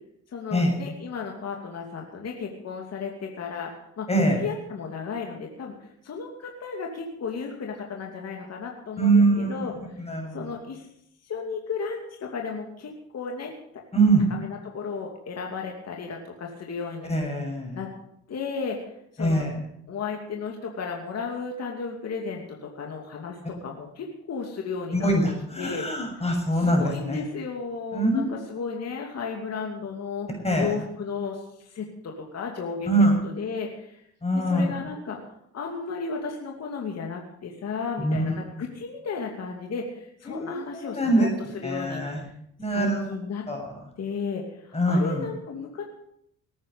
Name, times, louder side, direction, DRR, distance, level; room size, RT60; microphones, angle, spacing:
voice 1, 0.3-4.1 4.4-9.7 10.3-10.9 11.2-13.5 14.3-17.1 17.7-17.9 18.3-18.8 19.1-19.5 19.9-25.1 25.6-25.9 26.2-30.3 30.6-34.0 34.3-35.2 35.5-41.3 41.5-42.2 42.7-43.4 44.0-45.8, left 5 dB, 55° left, 1 dB, 2.7 m, -34 dB
voice 2, 9.0-9.8 10.1-10.4 13.9-14.2 17.1-17.8 19.2-19.5 24.9-27.2 27.9-28.3 30.4-30.7 32.9-33.1 34.2-34.7 38.0-38.4 40.3-40.6 40.9-41.3 41.6-42.2 42.6-43.1 43.5-43.7 44.7-45.3, right 1 dB, 20° left, 1 dB, 6.8 m, -23 dB
19.0 x 9.5 x 6.8 m, 0.73 s
cardioid pair, 90°, 30 cm